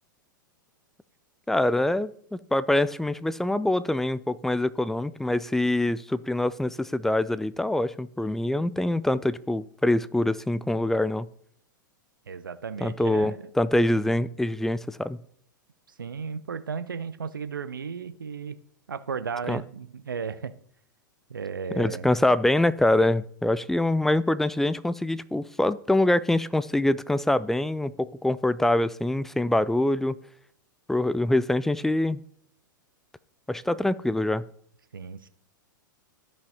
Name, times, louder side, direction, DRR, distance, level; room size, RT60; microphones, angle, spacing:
voice 1, 1.5-11.3 12.8-15.2 19.5-19.6 21.8-30.2 30.9-32.2 33.5-34.5, left 1 dB, 5° left, 16 dB, 0.3 m, -24 dB
voice 2, 12.3-13.4 16.0-18.6 18.9-20.5 21.3-22.1 34.9-35.3, right 6 dB, 85° right, 13 dB, 0.6 m, -34 dB
14.0 x 5.3 x 2.8 m, 0.65 s
figure-of-eight pair, 100°, 11 cm